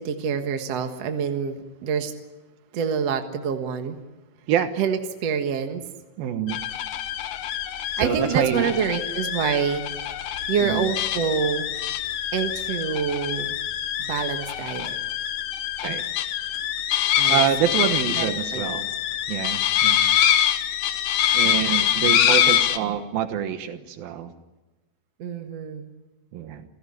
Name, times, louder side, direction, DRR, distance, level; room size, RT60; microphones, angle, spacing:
voice 1, 0.0-2.1 2.7-4.0 4.8-5.9 8.0-9.8 10.5-11.7 12.3-13.6 14.0-15.0 17.2-17.4 18.1-18.8 25.2-25.9, right 7 dB, 55° right, 6 dB, 2.4 m, -26 dB
voice 2, 6.2-6.6 8.0-8.7 10.6-10.8 15.8-16.0 17.3-18.9 19.3-20.2 21.3-24.3 26.3-26.6, right 9 dB, 85° right, 8 dB, 3.1 m, -26 dB
sound 1, 6.5-22.8, left 11 dB, 70° left, 2.6 m, -24 dB
29.0 x 16.0 x 9.9 m, 1.1 s
omnidirectional pair, 4.1 m